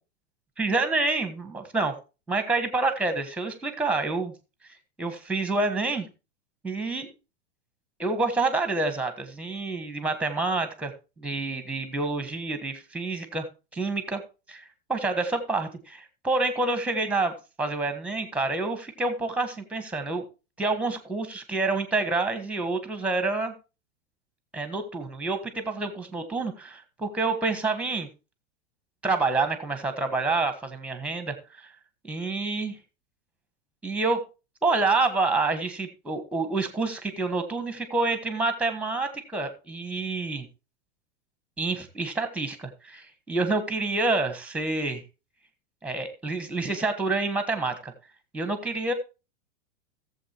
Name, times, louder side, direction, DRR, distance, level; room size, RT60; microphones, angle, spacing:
voice 1, 0.6-1.9 2.3-4.3 5.0-6.1 6.6-7.1 8.0-10.9 11.2-13.5 13.7-14.2 14.5-20.2 20.6-23.5 24.5-28.1 29.0-31.7 32.1-32.8 33.8-34.2 34.6-40.5 41.6-45.0 45.8-47.9 48.3-48.9, right 3 dB, 5° right, 9 dB, 1.4 m, -28 dB
16.5 x 7.5 x 3.0 m, 0.31 s
hypercardioid pair, 130°, 37 cm